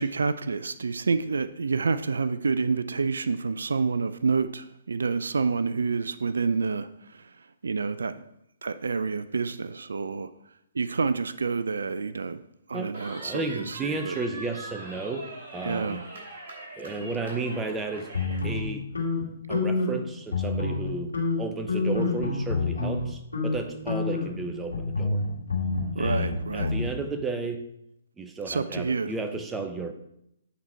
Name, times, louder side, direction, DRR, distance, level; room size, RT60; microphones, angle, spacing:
voice 1, 0.0-6.9 7.1-7.2 7.6-8.1 8.6-10.3 10.8-12.4 12.7-14.2 15.6-16.1 25.9-26.7 28.5-29.1, right 4 dB, 75° right, 0.3 m, -28 dB
voice 2, 12.7-16.0 16.8-18.1 18.4-18.8 19.2-25.2 26.0-27.6 28.2-29.9, right 3 dB, 10° right, 0.7 m, -33 dB
Cheering, 12.9-18.5, right 2 dB, 55° right, 3.1 m, -42 dB
sound 1, 18.1-20.0 20.3-20.9 21.1-23.0 23.3-23.6 23.9-26.9, left 3 dB, 90° left, 2.6 m, -28 dB
8.5 x 4.0 x 4.4 m
figure-of-eight pair, 130°, 0 cm